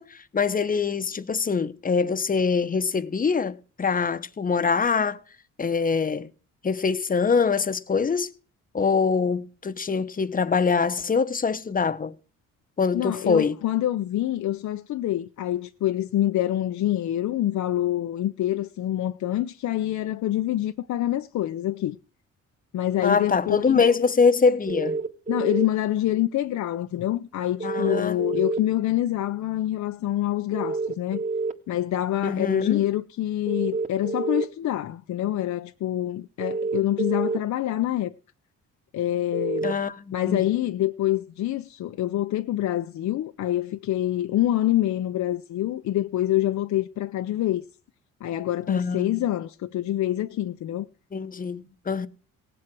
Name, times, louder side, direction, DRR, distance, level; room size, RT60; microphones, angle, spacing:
voice 1, 0.0-5.2 5.6-6.3 6.6-8.3 8.7-12.1 12.8-13.6 23.0-25.0 27.6-28.4 32.2-32.8 39.6-40.4 48.7-49.1 51.1-52.1, left 5 dB, 30° left, 1.0 m, -24 dB
voice 2, 12.9-22.0 22.7-23.8 25.3-31.2 31.7-38.1 38.9-39.8 40.1-47.6 48.2-50.9, left 13 dB, 65° left, 0.7 m, -26 dB
sound 1, 24.7-25.7 27.6-28.6 30.5-31.5 33.5-34.4 36.4-37.4 39.3-39.7, right 3 dB, 25° right, 1.9 m, -28 dB
18.0 x 7.7 x 6.1 m
cardioid pair, 90°, 30 cm